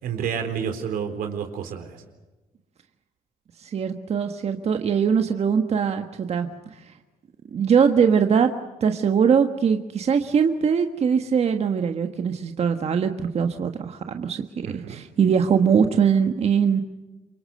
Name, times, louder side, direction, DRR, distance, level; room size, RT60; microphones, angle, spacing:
voice 1, 0.0-2.0 14.7-15.0, right 7 dB, 80° right, 6 dB, 4.1 m, -29 dB
voice 2, 3.6-6.5 7.5-8.5 8.8-16.8, right 7 dB, 45° right, 6 dB, 1.5 m, -21 dB
28.0 x 24.0 x 6.7 m, 1.1 s
cardioid pair, 110°, 15 cm